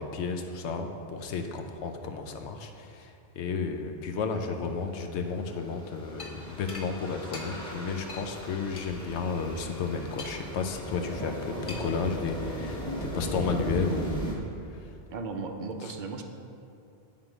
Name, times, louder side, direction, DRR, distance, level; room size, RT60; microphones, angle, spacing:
voice 1, 0.0-14.1, left 5 dB, 80° left, 5 dB, 0.9 m, -32 dB
sound 1, 5.4-14.3, equal, 5° left, 1.1 m, -37 dB
sound 2, 6.2-6.3 6.7-6.9 7.3-7.5 8.1-8.3 8.8-8.9 10.2-10.6 11.7-12.0, left 3 dB, 35° left, 0.7 m, -41 dB
voice 2, 15.1-16.2, right 4 dB, 55° right, 5 dB, 0.6 m, -36 dB
9.2 x 3.8 x 4.9 m, 2.6 s
omnidirectional pair, 1.1 m